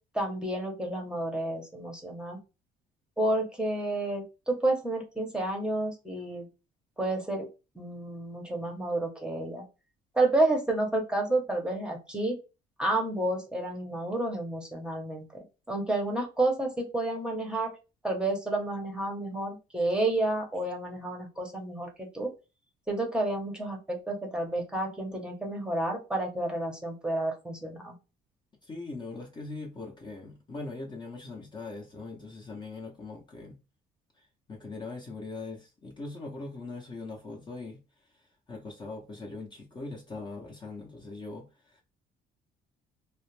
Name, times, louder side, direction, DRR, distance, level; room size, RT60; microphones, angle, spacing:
voice 1, 0.1-2.4 3.2-6.5 7.0-7.5 7.7-9.6 10.1-12.4 12.8-15.3 15.7-17.7 18.0-22.3 22.9-27.9, right 2 dB, 5° right, 0.8 m, -30 dB
voice 2, 28.6-33.6 34.2-37.8 38.5-41.8, left 3 dB, 25° left, 0.7 m, -41 dB
2.4 x 2.1 x 3.1 m
cardioid pair, 110°, 17 cm